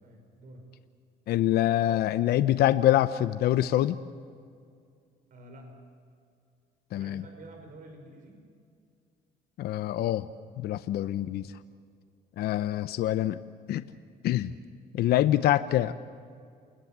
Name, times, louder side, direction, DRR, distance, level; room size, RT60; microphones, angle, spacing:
voice 1, 0.0-0.6 5.3-5.7 6.9-8.3, right 1 dB, 55° right, 4 dB, 5.7 m, -49 dB
voice 2, 1.3-4.0 6.9-7.2 9.6-10.3 10.6-11.5 12.4-13.4 13.7-13.8 14.2-14.5 14.9-15.9, left 13 dB, 70° left, 12 dB, 0.8 m, -25 dB
28.5 x 20.5 x 7.5 m, 2.2 s
cardioid pair, 110°, 17 cm